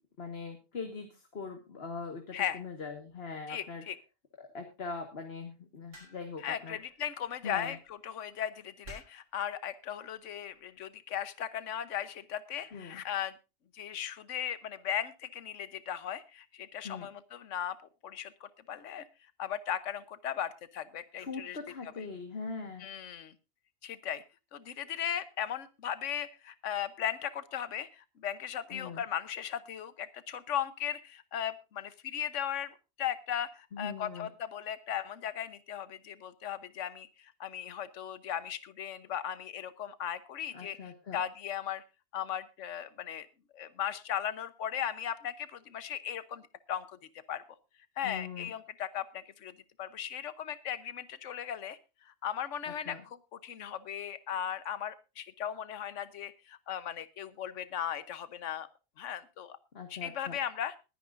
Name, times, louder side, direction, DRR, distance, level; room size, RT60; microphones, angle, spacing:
voice 1, 0.2-3.8 4.4-6.8 7.4-7.8 12.7-13.0 16.8-17.1 21.2-22.9 28.7-29.0 33.7-34.3 40.5-41.2 48.0-48.5 52.9-53.0 59.7-60.4, left 4 dB, 50° left, 4 dB, 1.8 m, -41 dB
voice 2, 3.5-4.0 6.4-13.3 13.7-17.8 18.0-19.0 19.4-21.6 21.8-21.9 22.8-23.3 23.8-24.2 24.5-41.8 42.1-43.3 43.5-47.0 47.3-47.4 48.0-49.5 49.8-53.2 53.4-58.7 59.0-59.6 59.9-60.7, left 9 dB, 70° left, 14 dB, 1.3 m, -37 dB
sound 1, 5.9-6.4 7.7-7.9 8.8-9.3 10.3-10.6, right 1 dB, 75° right, 7.2 m, -51 dB
21.5 x 10.0 x 2.5 m, 0.28 s
omnidirectional pair, 1.3 m